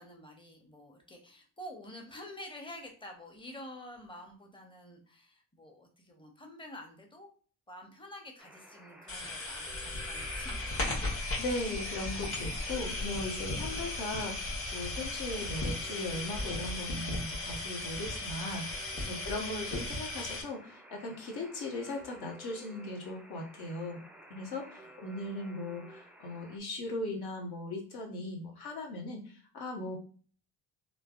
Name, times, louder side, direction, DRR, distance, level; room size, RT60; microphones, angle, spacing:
voice 1, 0.0-7.3 7.7-10.8 13.5-13.7 19.2-19.3 24.8-24.9, left 1 dB, 10° left, 2 dB, 0.8 m, -49 dB
Alarm, 8.4-26.6, right 1 dB, 5° right, 0.3 m, -54 dB
sound 1, 9.1-20.4, left 2 dB, 30° left, 1.2 m, -36 dB
voice 2, 11.0-24.0 24.3-30.0, left 2 dB, 65° left, 0 dB, 1.1 m, -38 dB
3.2 x 2.0 x 2.4 m, 0.42 s
supercardioid pair, 65°, 41 cm